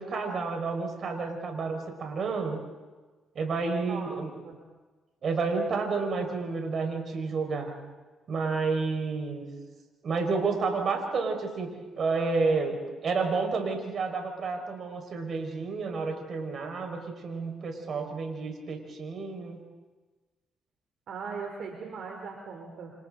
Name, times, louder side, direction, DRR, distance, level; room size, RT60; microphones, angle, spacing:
voice 1, 0.0-2.6 3.4-4.3 5.2-7.8 8.3-9.5 10.0-19.6, right 4 dB, 55° right, 4 dB, 5.3 m, -30 dB
voice 2, 3.7-4.1 4.4-4.6 21.1-22.9, right 5 dB, 70° right, 1 dB, 3.7 m, -39 dB
28.5 x 28.0 x 4.0 m, 1.3 s
cardioid pair, 90°, 0 cm